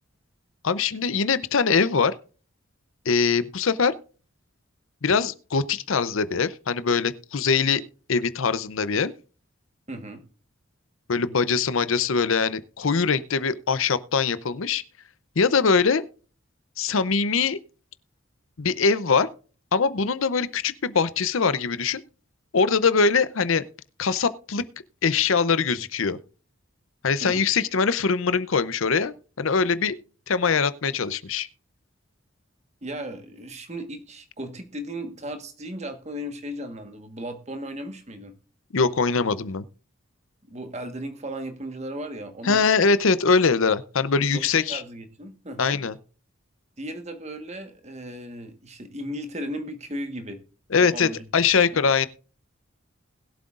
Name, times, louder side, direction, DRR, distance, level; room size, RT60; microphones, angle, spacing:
voice 1, 0.6-2.1 3.1-3.9 5.0-7.8 8.1-9.1 11.1-14.8 15.4-16.0 16.8-17.6 18.6-19.3 19.7-22.0 22.5-23.6 24.0-24.6 25.0-26.2 27.0-30.0 30.3-31.5 38.7-39.6 42.4-44.8 45.6-46.0 50.7-52.1, left 5 dB, 70° left, 0.7 m, -22 dB
voice 2, 9.9-10.2 27.2-27.4 32.8-38.3 40.5-42.6 44.3-44.4 44.7-45.8 46.8-50.4 50.8-51.3 51.7-51.9, equal, 30° right, 1.4 m, -36 dB
20.5 x 7.9 x 2.5 m
head